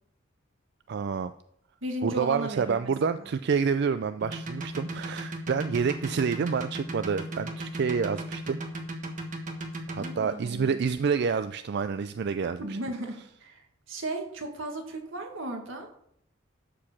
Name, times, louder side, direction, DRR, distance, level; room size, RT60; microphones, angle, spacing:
voice 1, 0.9-1.3 2.0-8.6 9.9-12.6, right 6 dB, 55° right, 11 dB, 0.4 m, -28 dB
voice 2, 1.8-3.3 10.0-10.8 12.6-15.9, right 1 dB, 85° right, 3 dB, 2.0 m, -36 dB
sound 1, 4.2-10.1, right 1 dB, 40° right, 1.5 m, -36 dB
11.5 x 4.9 x 7.2 m, 0.71 s
head